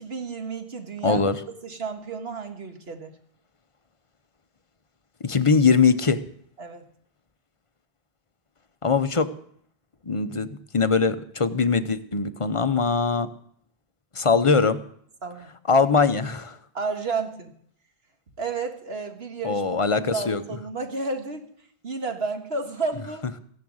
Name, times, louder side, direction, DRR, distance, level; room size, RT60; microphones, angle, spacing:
voice 1, 0.0-1.2 1.6-3.1 6.6-6.9 15.2-15.5 16.7-17.5 18.4-21.5 21.8-23.2, right 4 dB, 75° right, 5 dB, 2.0 m, -31 dB
voice 2, 1.0-1.4 5.2-6.2 8.8-9.3 10.1-10.5 10.7-13.3 14.1-14.8 15.7-16.6 19.4-20.4, left 5 dB, 35° left, 11 dB, 0.8 m, -21 dB
15.5 x 11.0 x 6.3 m, 0.65 s
omnidirectional pair, 1.0 m